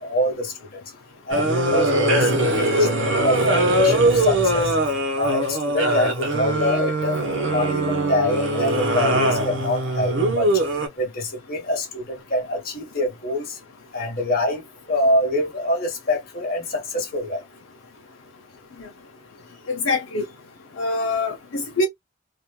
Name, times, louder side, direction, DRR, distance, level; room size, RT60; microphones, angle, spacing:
voice 1, 0.0-0.5 1.3-2.9 3.2-4.7 5.2-7.2 7.5-10.5 11.0-13.5 13.9-14.6 14.9-17.4, left 1 dB, 45° left, 1.1 m, -25 dB
sound 1, 1.3-10.9, right 1 dB, 55° right, 0.9 m, -21 dB
voice 2, 19.7-20.3 20.8-21.9, left 2 dB, 65° left, 0.6 m, -24 dB
3.0 x 2.5 x 2.2 m
head